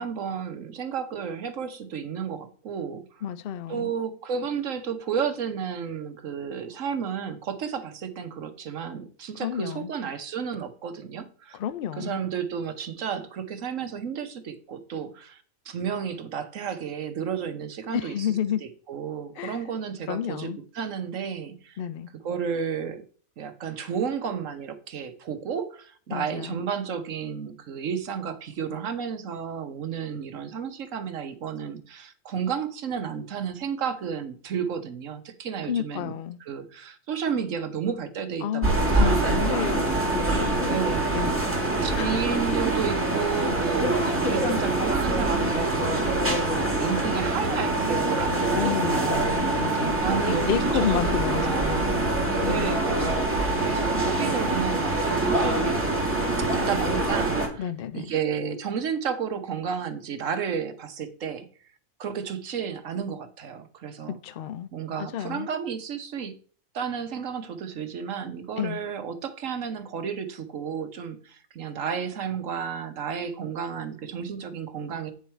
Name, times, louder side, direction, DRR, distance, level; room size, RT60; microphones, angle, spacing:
voice 1, 0.0-3.2 3.7-11.6 12.0-18.3 18.6-21.8 22.2-23.0 23.4-36.1 36.4-39.3 40.0-40.1 40.7-41.2 41.8-49.3 50.0-52.2 52.4-55.7 56.5-61.5 62.0-64.2 64.7-66.4 66.7-75.1, right 7 dB, 65° right, 1.3 m, -32 dB
voice 2, 3.2-3.9 9.4-9.9 11.5-12.2 17.9-18.6 19.4-19.6 20.1-20.6 21.8-22.1 26.1-26.6 35.7-36.4 38.4-41.4 41.9-42.2 48.5-52.0 52.4-52.8 57.6-58.1 64.1-64.7 65.0-65.5 68.6-68.8, left 10 dB, 80° left, 0.5 m, -31 dB
sound 1, 38.6-57.5, right 2 dB, 10° right, 1.6 m, -25 dB
9.1 x 4.7 x 4.4 m
omnidirectional pair, 1.5 m